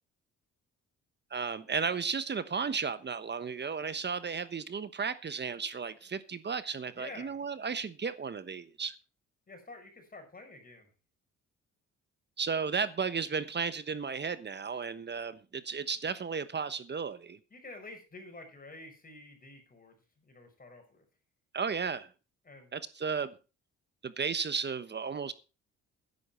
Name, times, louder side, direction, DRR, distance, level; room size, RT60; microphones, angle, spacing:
voice 1, 1.3-9.0 12.4-17.4 21.5-22.1 22.7-23.3 24.0-25.3, right 5 dB, 35° right, 1.1 m, -34 dB
voice 2, 6.9-7.4 9.5-10.9 17.5-21.1 22.4-22.7, left 2 dB, 30° left, 6.0 m, -49 dB
12.5 x 11.0 x 4.4 m
cardioid pair, 90°, 30 cm